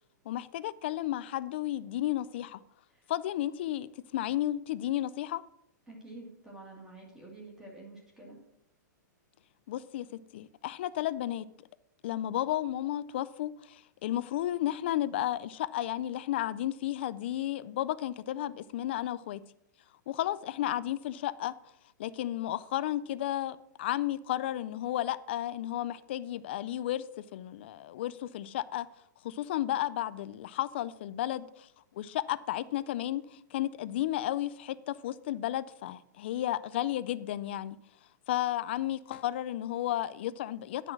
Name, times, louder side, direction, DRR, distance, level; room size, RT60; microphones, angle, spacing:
voice 1, 0.3-2.6 3.1-5.4 9.7-11.5 12.0-19.4 20.1-21.5 22.0-28.9 29.2-31.7 31.9-37.8 38.3-40.9, left 13 dB, 35° left, 0.4 m, -33 dB
voice 2, 5.9-8.4, right 2 dB, 5° right, 1.8 m, -48 dB
9.8 x 5.9 x 5.9 m
hypercardioid pair, 175°, 10 cm